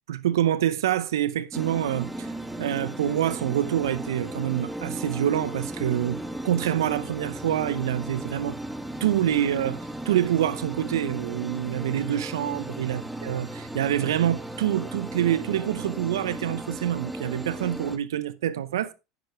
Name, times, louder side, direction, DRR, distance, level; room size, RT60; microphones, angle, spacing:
voice 1, 0.1-2.3 2.6-8.6 9.0-18.9, right 11 dB, 85° right, 0.8 m, -26 dB
sound 1, 1.5-18.0, right 1 dB, 5° right, 1.3 m, -36 dB
10.5 x 8.3 x 3.2 m
hypercardioid pair, 85°, 2 cm